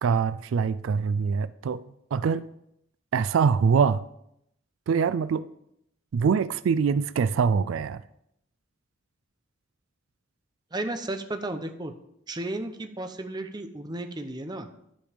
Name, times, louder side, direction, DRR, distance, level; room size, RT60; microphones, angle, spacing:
voice 1, 0.0-1.8 2.1-2.4 3.1-4.1 4.9-5.5 6.1-8.0, right 6 dB, 85° right, 0.3 m, -24 dB
voice 2, 10.7-11.9 12.3-14.7, right 2 dB, 20° right, 0.7 m, -33 dB
11.5 x 5.2 x 5.1 m
head